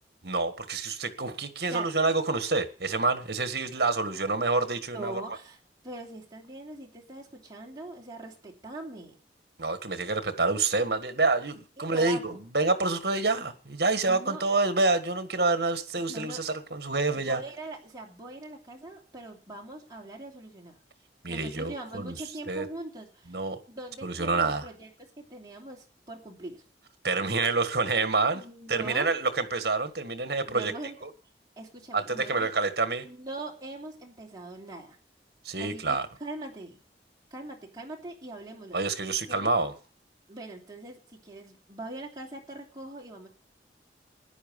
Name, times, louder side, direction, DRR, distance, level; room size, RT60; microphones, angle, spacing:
voice 1, 0.2-5.2 9.6-17.4 21.2-22.2 22.5-22.7 23.3-23.6 24.0-24.7 27.0-28.4 28.7-30.7 31.9-33.1 35.5-36.1 38.7-39.7, right 3 dB, 65° right, 1.6 m, -27 dB
voice 2, 4.9-5.6 5.8-9.2 11.8-12.4 13.4-13.5 14.1-14.4 16.1-16.4 17.1-20.8 21.3-23.4 23.7-26.6 28.3-29.1 30.5-31.0 31.6-32.5 33.0-35.0 35.6-36.8 37.3-38.8 39.3-39.5 40.3-43.3, right 2 dB, 20° right, 3.0 m, -42 dB
14.5 x 10.5 x 5.3 m
head